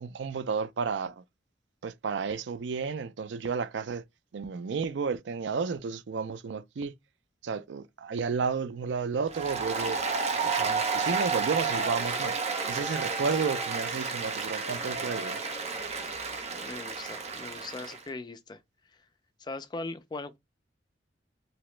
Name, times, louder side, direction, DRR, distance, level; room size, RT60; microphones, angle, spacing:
voice 1, 0.0-1.2 1.8-4.0 4.3-6.9 7.4-10.0 10.4-12.4 12.7-15.4, right 5 dB, 80° right, 0.4 m, -32 dB
Applause, 9.3-18.0, right 4 dB, 40° right, 0.7 m, -31 dB
voice 2, 16.6-18.6 19.4-20.4, left 3 dB, 25° left, 0.4 m, -39 dB
3.0 x 2.8 x 3.1 m
head